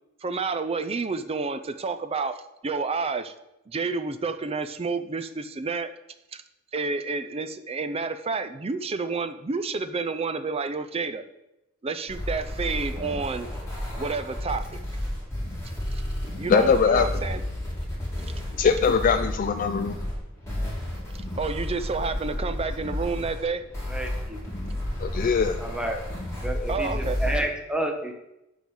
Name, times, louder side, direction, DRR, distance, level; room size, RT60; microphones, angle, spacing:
voice 1, 0.2-3.3 3.7-5.9 6.3-6.4 6.7-11.2 11.8-13.5 14.0-14.8 16.4-17.4 18.6-18.7 21.4-23.6 26.7-27.2, right 4 dB, 30° right, 11 dB, 0.5 m, -29 dB
sound 1, 12.1-27.4, left 1 dB, 15° left, 2.8 m, -32 dB
voice 2, 16.5-17.2 18.6-20.0 25.0-25.6, left 6 dB, 40° left, 8 dB, 0.3 m, -21 dB
voice 3, 23.9-24.4 25.6-26.0 26.4-28.1, right 1 dB, 5° right, 2 dB, 1.0 m, -30 dB
8.4 x 3.8 x 6.3 m, 0.90 s
head